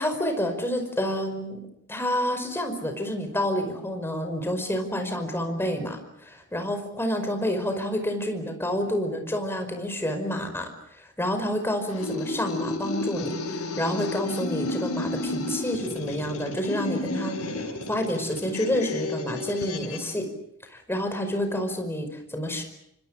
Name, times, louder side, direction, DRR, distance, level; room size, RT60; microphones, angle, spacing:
voice 1, 0.0-1.6 1.9-10.7 11.2-20.3 20.7-22.6, left 1 dB, 10° left, 6 dB, 5.2 m, -29 dB
sound 1, 11.9-20.1, left 2 dB, 90° left, 5.7 m, -32 dB
28.0 x 25.5 x 6.5 m, 0.78 s
head